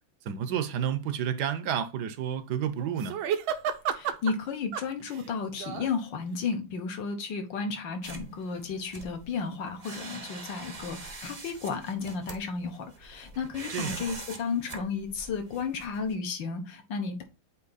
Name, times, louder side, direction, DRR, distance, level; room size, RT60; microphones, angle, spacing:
voice 1, 0.2-3.2 13.7-14.0, right 9 dB, 70° right, 1.1 m, -30 dB
sound 1, 2.8-4.3 4.7-5.9 6.5-6.6, right 8 dB, 90° right, 1.5 m, -32 dB
voice 2, 3.9-17.2, left 5 dB, 70° left, 1.8 m, -33 dB
sound 2, 8.0-16.1, right 3 dB, 40° right, 0.5 m, -44 dB
8.3 x 2.9 x 4.0 m
omnidirectional pair, 2.1 m